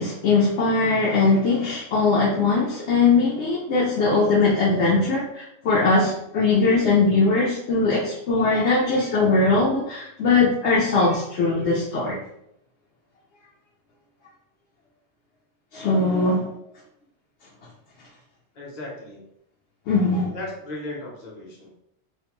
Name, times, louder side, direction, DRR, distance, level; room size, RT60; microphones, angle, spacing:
voice 1, 0.0-12.2 15.7-16.5 19.9-20.3, left 3 dB, 75° left, -5 dB, 0.9 m, -20 dB
voice 2, 18.5-19.2 20.3-21.7, left 1 dB, 45° left, -2 dB, 0.7 m, -36 dB
2.5 x 2.1 x 2.9 m, 0.76 s
omnidirectional pair, 1.2 m